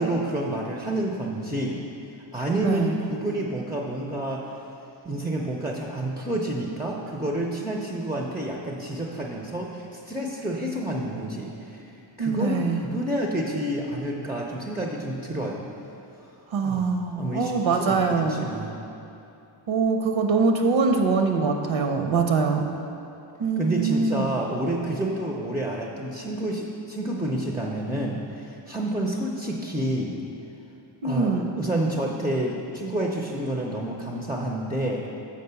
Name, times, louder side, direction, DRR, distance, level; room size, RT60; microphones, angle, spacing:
voice 1, 0.0-1.8 2.3-4.4 5.0-11.8 12.2-15.7 16.6-16.9 17.2-18.7 23.6-30.2 31.0-35.0, right 1 dB, 10° right, -1 dB, 0.4 m, -29 dB
voice 2, 2.6-3.0 12.2-12.8 16.5-18.5 19.7-22.7 23.4-24.3 31.0-31.5, right 4 dB, 75° right, 4 dB, 0.7 m, -23 dB
6.6 x 5.0 x 6.7 m, 2.8 s
wide cardioid pair, 170°, 47 cm